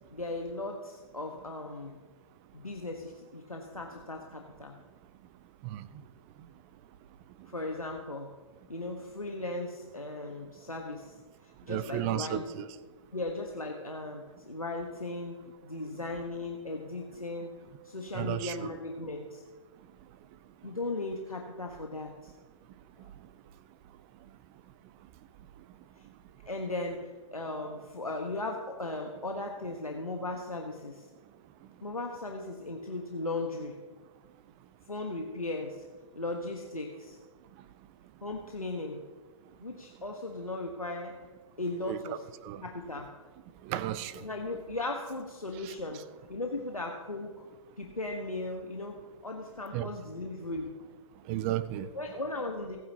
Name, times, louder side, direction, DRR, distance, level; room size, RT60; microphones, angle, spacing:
voice 1, 0.1-2.0 2.5-4.8 7.5-8.3 8.7-11.2 11.4-12.4 13.1-17.6 17.8-19.4 20.6-22.3 23.0-23.1 26.0-26.1 26.5-31.1 31.8-33.7 34.9-35.8 36.1-37.2 38.2-39.0 39.6-41.2 41.6-42.2 42.6-43.1 44.2-46.0 46.3-47.5 47.8-50.7 51.9-52.8, left 2 dB, 80° left, 2 dB, 1.4 m, -37 dB
voice 2, 11.7-12.7 18.1-18.8 41.9-42.2 42.4-42.6 43.6-44.2 45.5-46.0 49.7-49.9 51.3-51.9, right 12 dB, 20° right, 16 dB, 0.5 m, -34 dB
27.0 x 9.3 x 2.9 m, 1.5 s
figure-of-eight pair, 120°, 18 cm